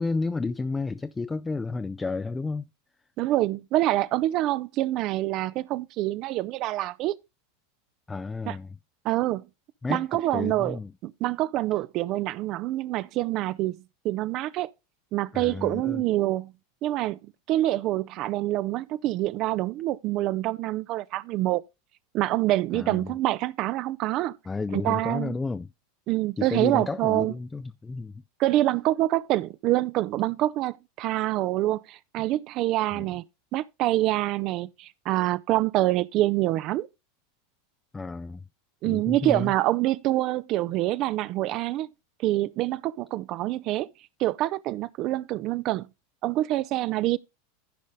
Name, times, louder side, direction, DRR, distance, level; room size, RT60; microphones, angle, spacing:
voice 1, 0.0-2.7 8.1-8.8 9.8-10.9 15.3-16.0 22.7-23.1 24.5-25.7 26.4-28.2 32.9-33.1 37.9-38.4 38.8-39.5, left 3 dB, 15° left, 0.4 m, -31 dB
voice 2, 3.2-7.2 8.5-8.6 9.0-9.4 9.9-10.8 11.0-13.8 14.0-14.7 15.1-16.5 16.8-21.6 22.1-24.4 24.7-25.4 26.1-27.3 28.4-33.2 33.5-36.9 38.8-41.9 42.2-43.9 44.2-45.9 46.2-47.2, right 16 dB, 45° right, 0.6 m, -26 dB
15.0 x 5.2 x 3.6 m
figure-of-eight pair, 85°, 0 cm